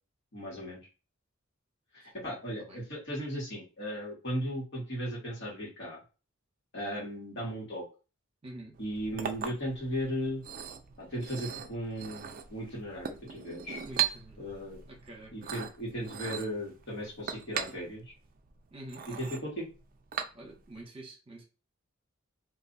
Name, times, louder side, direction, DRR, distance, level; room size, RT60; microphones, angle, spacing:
voice 1, 0.3-0.8 1.9-6.0 6.7-7.8 8.8-10.4 11.0-13.8 14.4-14.8 15.3-18.0 19.1-19.7, equal, 60° left, -3 dB, 1.5 m, -36 dB
voice 2, 8.4-8.7 13.9-14.4 14.9-15.5 18.7-19.3 20.3-21.4, right 1 dB, 25° right, -1 dB, 1.0 m, -47 dB
Chink clink, 8.7-20.8, right 9 dB, 40° right, 0.4 m, -39 dB
2.5 x 2.4 x 3.9 m, 0.33 s
head